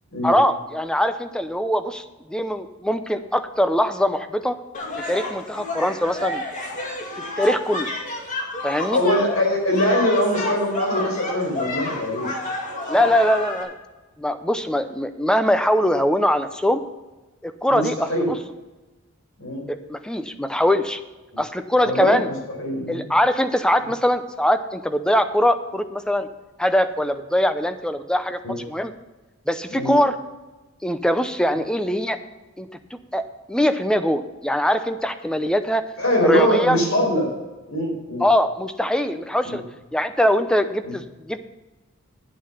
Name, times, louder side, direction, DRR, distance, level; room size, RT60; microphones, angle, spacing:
voice 1, 0.2-4.6 5.1-6.4 7.4-7.9 8.6-9.0 12.9-13.7 14.2-16.8 17.4-18.4 19.7-21.0 21.4-22.3 22.9-26.3 26.6-28.9 29.5-30.2 30.8-32.2 32.6-33.2 33.5-35.8 36.2-36.8 38.2-39.6 39.9-41.4, equal, 5° left, 10 dB, 0.6 m, -22 dB
sound 1, 4.7-13.6, left 2 dB, 35° left, 2.2 m, -30 dB
voice 2, 8.8-12.3 17.7-18.3 19.4-19.6 21.8-23.0 28.4-28.6 29.7-29.9 36.0-37.3 37.7-38.2 39.4-39.6 40.8-40.9, left 1 dB, 70° left, 0 dB, 4.4 m, -22 dB
10.0 x 8.1 x 5.6 m, 1.2 s
head